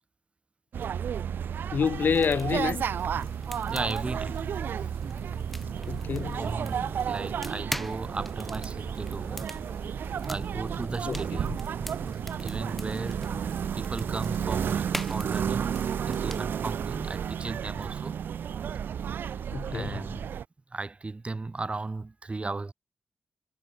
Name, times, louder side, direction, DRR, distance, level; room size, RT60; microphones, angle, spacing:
sound 1, 0.7-20.4, right 8 dB, 80° right, 0.5 m, -32 dB
voice 1, 1.7-2.8 5.9-6.5 11.1-11.6 19.5-20.0, left 6 dB, 70° left, 0.7 m, -28 dB
sound 2, 1.8-16.4, equal, 5° left, 1.4 m, -42 dB
voice 2, 3.7-4.5 5.7-5.9 6.3-9.5 10.3-11.6 12.4-15.8 16.1-18.2 19.7-20.3 20.7-22.7, right 3 dB, 35° right, 3.1 m, -36 dB
cardioid pair, 60°, 3 cm